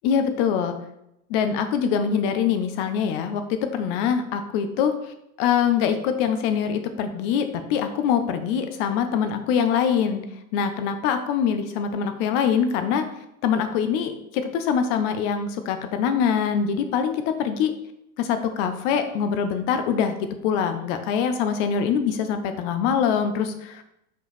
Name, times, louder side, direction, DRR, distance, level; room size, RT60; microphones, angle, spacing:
voice 1, 0.0-0.8 1.3-5.0 5.4-10.2 10.5-13.1 13.4-17.7 18.2-23.8, left 7 dB, 50° left, 9 dB, 1.0 m, -24 dB
5.7 x 5.0 x 4.2 m, 0.82 s
hypercardioid pair, 115°, 45 cm